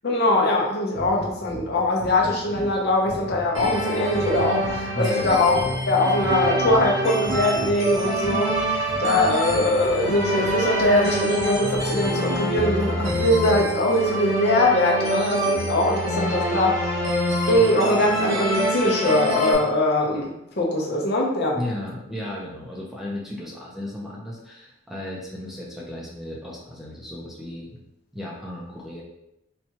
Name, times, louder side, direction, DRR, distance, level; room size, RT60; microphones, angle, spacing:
voice 1, 0.0-5.6 5.9-16.9 17.5-21.6, left 1 dB, 55° left, -1 dB, 0.7 m, -22 dB
sound 1, 0.9-13.6, equal, 35° right, 0.7 m, -38 dB
sound 2, 3.5-19.5, equal, 70° right, 1.0 m, -26 dB
voice 2, 4.9-5.6 21.5-27.8 28.1-29.0, left 1 dB, ahead, -5 dB, 0.5 m, -34 dB
4.2 x 2.3 x 2.9 m, 0.84 s
head